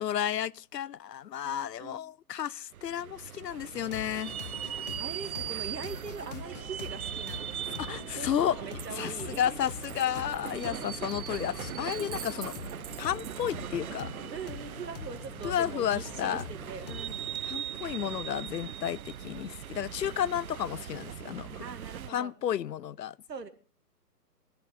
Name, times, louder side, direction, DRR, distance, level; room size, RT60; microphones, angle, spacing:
voice 1, 0.0-4.3 7.8-8.6 8.9-12.5 13.0-14.1 15.4-16.4 17.4-21.6 22.1-23.2, left 10 dB, 85° left, 0.6 m, -32 dB
voice 2, 1.4-2.0 5.0-9.7 10.6-10.9 11.5-11.6 14.3-17.3 21.6-22.3 23.3-23.5, right 5 dB, 80° right, 2.3 m, -42 dB
sound 1, 2.7-22.1, right 10 dB, 60° right, 0.7 m, -40 dB
sound 2, 3.7-17.4, left 8 dB, 25° left, 0.8 m, -45 dB
Coin (dropping), 8.7-14.1 15.2-15.9, right 9 dB, 30° right, 2.7 m, -49 dB
18.0 x 14.0 x 3.7 m
hypercardioid pair, 145°, 48 cm